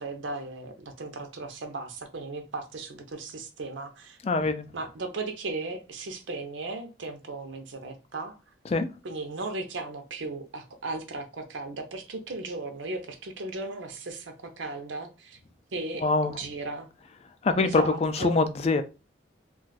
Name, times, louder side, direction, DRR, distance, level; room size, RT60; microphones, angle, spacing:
voice 1, 0.0-4.2 4.7-8.4 9.0-15.4 15.7-16.9 17.6-18.4, right 2 dB, 80° right, 0.6 m, -36 dB
voice 2, 4.2-4.7 8.6-8.9 15.9-16.4 17.4-18.8, left 3 dB, 30° left, 0.3 m, -24 dB
2.5 x 2.3 x 3.9 m
head